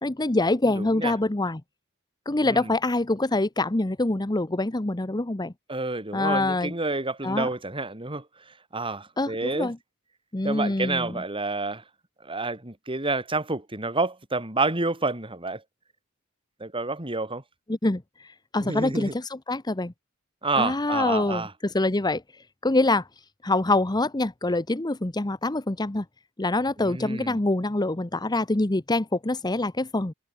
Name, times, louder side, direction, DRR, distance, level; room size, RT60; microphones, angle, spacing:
voice 1, 0.0-1.6 2.3-5.5 6.1-6.7 7.2-7.5 9.2-9.8 10.3-11.1 17.7-19.9 20.6-22.2 22.6-23.1 23.4-26.0 26.4-30.1, left 2 dB, 20° left, 0.9 m, -25 dB
voice 2, 0.8-1.1 2.4-2.7 5.7-8.2 8.7-9.7 10.4-11.8 12.2-15.6 16.6-17.4 18.6-19.1 20.4-21.5 26.8-27.4, right 3 dB, 25° right, 3.7 m, -29 dB
head